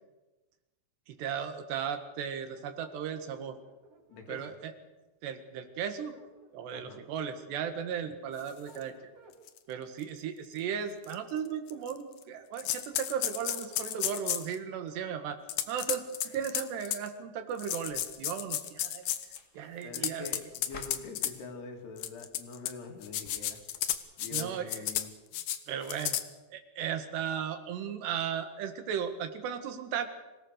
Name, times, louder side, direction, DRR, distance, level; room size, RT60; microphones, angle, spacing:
voice 1, 1.1-3.6 4.3-4.7 5.2-6.1 6.5-8.9 9.7-15.4 15.7-16.0 16.3-19.0 19.6-20.3 24.3-24.8 25.7-26.2 26.5-30.1, right 8 dB, 75° right, 8 dB, 3.7 m, -36 dB
sound 1, 2.5-4.6 5.9-7.0 8.1-9.4 10.8-11.9 12.4-14.2, right 1 dB, 50° right, 5.4 m, -57 dB
voice 2, 4.1-4.5 6.7-7.0 8.0-8.1 16.2-16.4 19.8-23.6 24.2-25.4, left 4 dB, 70° left, 3 dB, 4.5 m, -45 dB
sound 2, 8.7-8.8 9.5-9.6 10.0-10.1 11.0-11.1 11.7-12.2 12.6-14.5 15.5-17.1 17.6-19.4 19.8-21.3 22.0-22.7 23.0-24.4 24.7-25.1 25.3-25.6 25.9-26.2, left 11 dB, 90° left, 1.6 m, -33 dB
sound 3, 17.9-23.9, left 3 dB, 35° left, 1.1 m, -56 dB
26.0 x 17.5 x 6.6 m, 1.1 s
omnidirectional pair, 4.9 m